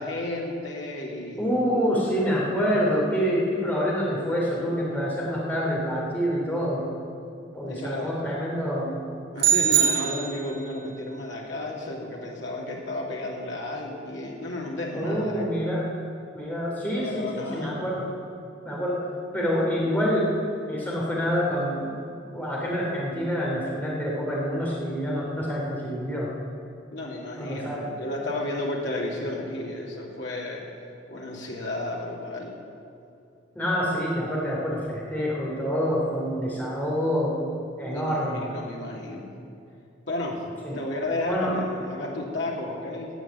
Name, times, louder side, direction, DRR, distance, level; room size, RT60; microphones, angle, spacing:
voice 1, 0.0-1.4 7.6-8.2 9.3-15.5 16.9-17.8 26.9-30.6 31.1-32.6 37.9-39.3 40.1-40.4 40.7-43.1, left 2 dB, 65° left, -2 dB, 2.7 m, -32 dB
voice 2, 1.4-6.9 7.5-9.0 14.9-15.9 16.3-18.0 18.6-19.0 19.3-20.3 20.7-21.9 22.3-26.3 27.4-27.8 33.5-37.4 37.8-38.5 40.6-40.8 41.3-41.6, equal, 10° left, -5 dB, 3.4 m, -27 dB
sound 1, 9.4-10.7, right 8 dB, 85° right, 1.5 m, -22 dB
16.0 x 6.3 x 9.5 m, 2.5 s
head